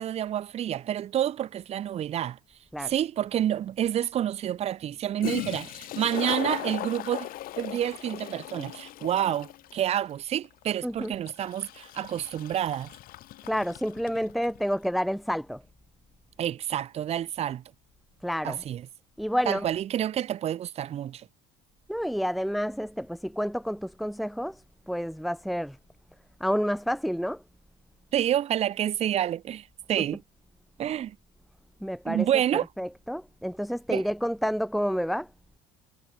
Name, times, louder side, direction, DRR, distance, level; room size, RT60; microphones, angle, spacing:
voice 1, 0.0-2.4 2.8-7.3 7.6-12.9 16.4-17.6 18.4-18.8 19.5-21.3 28.1-30.2 30.8-31.1 32.1-32.7 33.9-34.0, right 11 dB, 35° right, 1.1 m, -28 dB
Toilet flush, 3.2-3.3 4.9-5.0 5.2-14.6, left 16 dB, 55° left, 2.4 m, -38 dB
voice 2, 10.8-11.1 13.5-15.6 18.2-18.6 19.2-19.7 21.9-24.6 24.9-25.8 26.4-27.4 31.8-32.3 32.8-35.3, equal, ahead, 1.0 m, -29 dB
cardioid pair, 145°, 18 cm